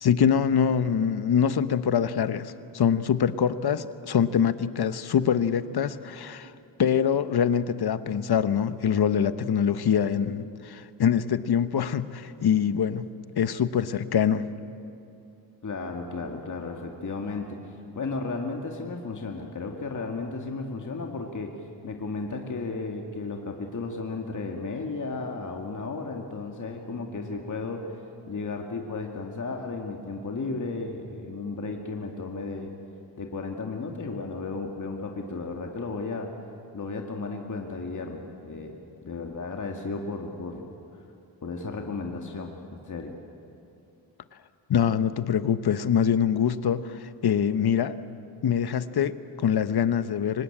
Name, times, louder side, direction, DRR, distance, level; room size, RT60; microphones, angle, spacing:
voice 1, 0.0-6.5 6.8-13.0 13.4-14.4 44.7-48.0 48.4-50.4, left 8 dB, 60° left, 13 dB, 1.1 m, -24 dB
voice 2, 15.6-21.5 21.8-27.9 28.3-32.7 33.2-36.3 36.7-38.8 39.0-40.7 41.4-42.5 42.9-43.1, left 3 dB, 45° left, 2 dB, 2.2 m, -34 dB
25.0 x 19.5 x 8.8 m, 2.7 s
cardioid pair, 80°, 43 cm